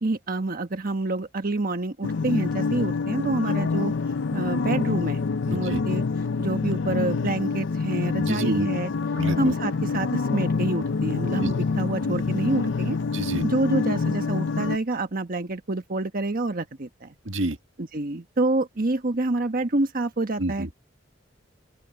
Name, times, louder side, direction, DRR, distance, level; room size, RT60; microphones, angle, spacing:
voice 1, 0.0-4.0 4.3-5.2 5.5-6.0 6.4-8.9 9.4-13.0 13.4-17.1 17.8-20.7, right 2 dB, 50° right, 1.3 m, -27 dB
sound 1, 2.0-14.8, left 4 dB, 70° left, 0.5 m, -26 dB
voice 2, 5.5-5.8 8.2-8.7 9.2-9.5 11.4-11.5 13.1-13.4 17.3-17.6 20.4-20.8, right 1 dB, 80° right, 1.7 m, -28 dB
open air
head